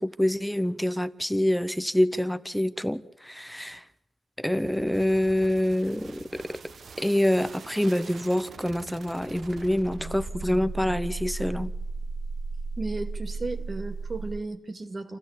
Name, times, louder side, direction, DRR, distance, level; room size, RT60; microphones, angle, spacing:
voice 1, 0.0-3.8 4.4-11.7, left 1 dB, ahead, 0.8 m, -26 dB
sound 1, 4.5-14.4, right 3 dB, 55° right, 1.1 m, -37 dB
voice 2, 12.8-15.2, right 3 dB, 35° right, 2.3 m, -34 dB
27.5 x 15.0 x 8.4 m
wide cardioid pair, 140°, 0 cm